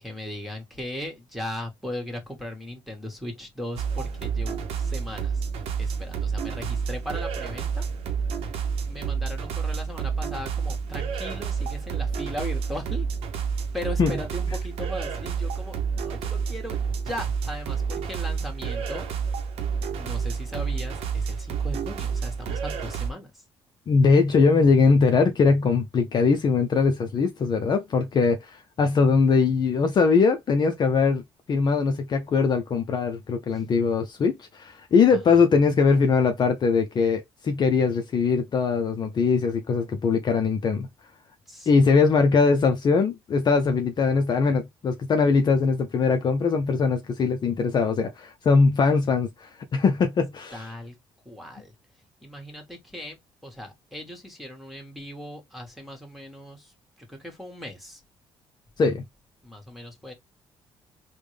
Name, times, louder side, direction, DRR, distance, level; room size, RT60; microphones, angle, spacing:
voice 1, 0.0-5.4 5.8-7.9 8.9-13.1 13.7-19.1 20.0-23.4 33.5-33.6 35.1-35.4 41.5-41.8 50.5-51.0 51.2-51.7 52.2-53.2 53.4-56.7 57.0-58.0 59.4-60.1, left 1 dB, ahead, 1.5 m, -38 dB
sound 1, 3.8-23.1, right 6 dB, 85° right, 0.8 m, -29 dB
voice 2, 23.9-31.2 31.5-40.9 41.7-50.6 58.8-59.0, left 5 dB, 45° left, 0.6 m, -21 dB
3.5 x 2.2 x 3.2 m
cardioid pair, 90°, 10 cm